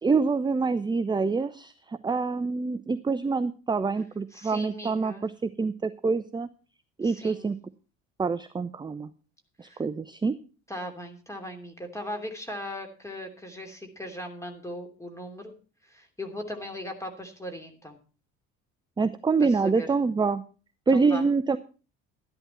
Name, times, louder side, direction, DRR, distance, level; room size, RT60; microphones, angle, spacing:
voice 1, 0.0-6.5 7.0-7.6 8.2-9.1 9.6-10.3 19.0-20.4 20.9-21.6, right 4 dB, 10° right, 13 dB, 0.5 m, -26 dB
voice 2, 4.3-5.2 7.0-7.5 9.6-9.8 10.7-15.5 15.9-18.0 19.4-19.9 20.9-21.3, equal, 5° left, 4 dB, 3.0 m, -38 dB
12.5 x 10.5 x 4.4 m, 0.36 s
figure-of-eight pair, 60°, 41 cm